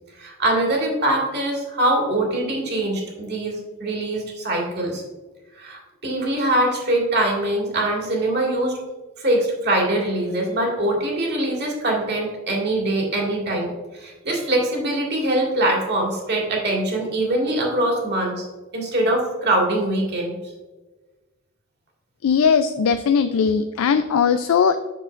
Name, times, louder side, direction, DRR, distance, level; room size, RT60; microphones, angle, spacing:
voice 1, 0.2-5.0 5.6-8.8 9.2-18.5 18.7-20.4, right 1 dB, 55° right, -1 dB, 2.0 m, -23 dB
voice 2, 22.2-24.9, left 6 dB, 80° left, 9 dB, 0.4 m, -19 dB
7.6 x 6.4 x 2.5 m, 1.2 s
head